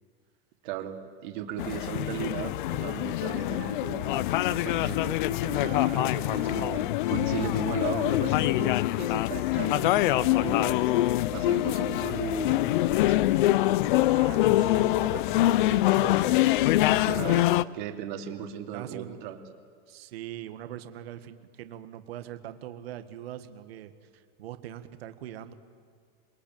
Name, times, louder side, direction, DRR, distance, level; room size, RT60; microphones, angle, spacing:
voice 1, 0.6-10.9 11.3-13.2 17.0-17.5 17.7-19.4, right 10 dB, 50° right, 4 dB, 2.7 m, -37 dB
sound 1, 1.6-17.6, left 16 dB, 55° left, 0.6 m, -25 dB
voice 2, 5.5-6.7 14.0-16.4 18.7-19.2 19.9-25.5, right 11 dB, 75° right, 9 dB, 1.8 m, -42 dB
28.0 x 22.0 x 9.0 m, 2.1 s
supercardioid pair, 170°, 31 cm